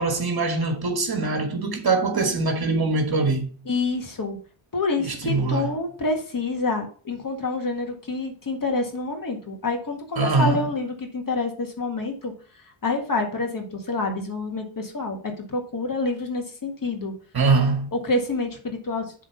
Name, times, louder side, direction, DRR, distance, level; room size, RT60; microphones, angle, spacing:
voice 1, 0.0-3.5 5.0-5.7 10.2-10.6 17.3-17.9, right 3 dB, 45° right, 1.7 m, -23 dB
voice 2, 3.7-4.4 4.7-12.3 12.8-17.1 18.0-19.0, left 3 dB, 40° left, 1.7 m, -27 dB
7.4 x 3.8 x 5.2 m
cardioid pair, 80°, 50 cm